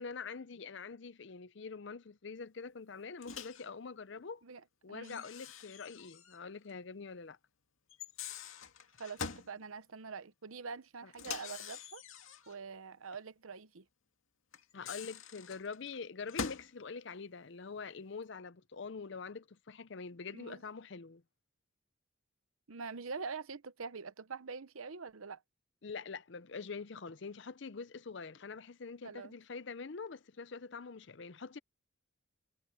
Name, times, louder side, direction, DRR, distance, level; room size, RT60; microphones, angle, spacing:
voice 1, 0.0-4.4 4.8-7.4 11.0-11.1 14.7-21.2 25.8-31.6, left 5 dB, 55° left, 0.6 m, -45 dB
Microwave oven, 3.2-3.7 5.0-6.4 6.7-6.8 7.9-9.5 11.1-12.6 14.5-16.7, left 6 dB, 75° left, 2.3 m, -44 dB
voice 2, 4.9-5.2 9.0-12.0 12.5-13.8 20.3-20.6 22.7-25.4 29.0-29.3, right 5 dB, 80° right, 0.9 m, -44 dB
head